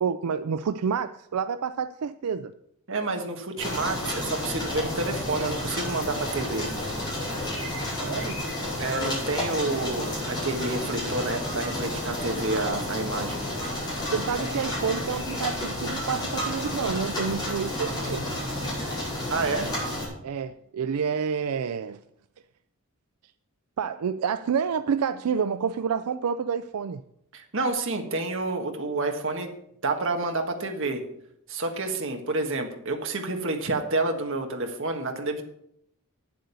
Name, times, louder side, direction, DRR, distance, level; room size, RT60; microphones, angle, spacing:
voice 1, 0.0-2.5 8.0-8.4 14.1-18.4 20.2-22.0 23.8-27.0, right 6 dB, 85° right, 12 dB, 0.4 m, -28 dB
voice 2, 2.9-6.7 8.8-13.4 19.3-19.7 27.3-29.5 29.8-31.0 31.5-35.4, right 2 dB, 60° right, 4 dB, 1.5 m, -29 dB
sound 1, 3.6-20.1, left 1 dB, 20° left, 5.4 m, -31 dB
9.3 x 7.7 x 6.9 m, 0.75 s
head